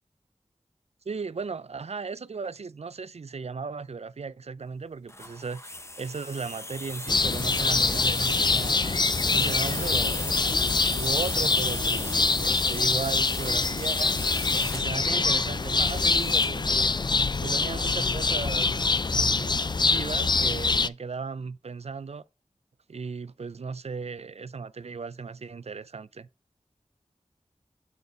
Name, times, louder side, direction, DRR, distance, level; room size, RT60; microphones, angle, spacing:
voice 1, 1.1-10.3 11.0-14.2 14.5-16.9 17.4-19.5 19.8-22.2 22.9-26.3, right 5 dB, 60° right, 0.4 m, -36 dB
sound 1, 5.1-16.7, left 1 dB, 20° left, 0.7 m, -35 dB
sound 2, 7.1-20.9, left 4 dB, 35° left, 0.4 m, -25 dB
8.1 x 4.1 x 4.5 m
wide cardioid pair, 40°, 12 cm